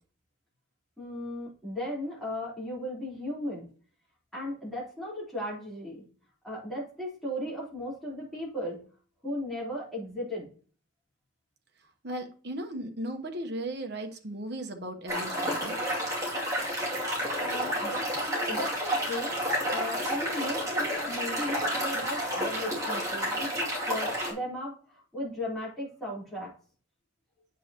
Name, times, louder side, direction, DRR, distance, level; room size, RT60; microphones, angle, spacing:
voice 1, 1.0-3.7 4.3-6.1 6.4-8.8 9.2-10.5 17.4-26.5, left 1 dB, ahead, -7 dB, 4.0 m, -36 dB
voice 2, 12.0-15.8, right 1 dB, 55° right, 4 dB, 1.1 m, -36 dB
sound 1, 15.1-24.3, equal, 15° right, 2.6 m, -30 dB
9.0 x 6.7 x 3.0 m, 0.41 s
head